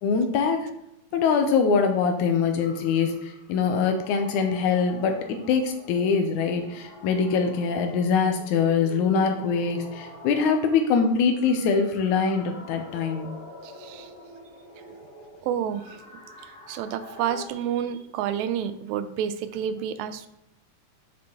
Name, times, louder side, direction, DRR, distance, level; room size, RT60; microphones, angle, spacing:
voice 1, 0.0-0.7 1.1-13.3, left 5 dB, 85° left, 5 dB, 2.1 m, -23 dB
sound 1, 2.6-17.5, left 1 dB, 30° left, 1.2 m, -46 dB
voice 2, 13.6-14.1 15.4-16.0 16.7-20.3, right 9 dB, 85° right, 11 dB, 1.9 m, -29 dB
7.5 x 6.0 x 3.7 m, 0.83 s
omnidirectional pair, 3.3 m